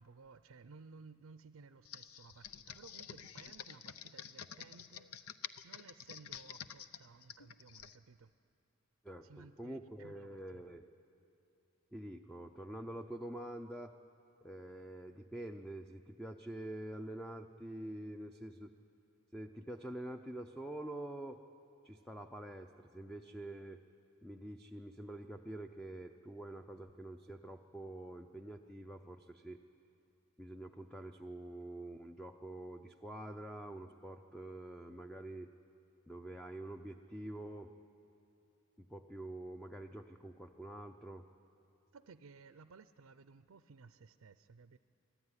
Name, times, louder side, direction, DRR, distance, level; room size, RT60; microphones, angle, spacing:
voice 1, 0.0-8.3 9.2-10.6 41.9-44.8, right 4 dB, 75° right, 12 dB, 0.5 m, -58 dB
Computer keyboard, 1.8-8.0, left 8 dB, 90° left, 0.7 m, -49 dB
voice 2, 9.0-10.8 11.9-14.0 14.4-18.7 19.3-21.4 21.8-23.8 24.2-29.6 30.4-35.5 36.1-37.7 38.8-41.3, right 1 dB, 5° left, 5 dB, 0.5 m, -46 dB
24.0 x 14.0 x 9.7 m, 2.9 s
head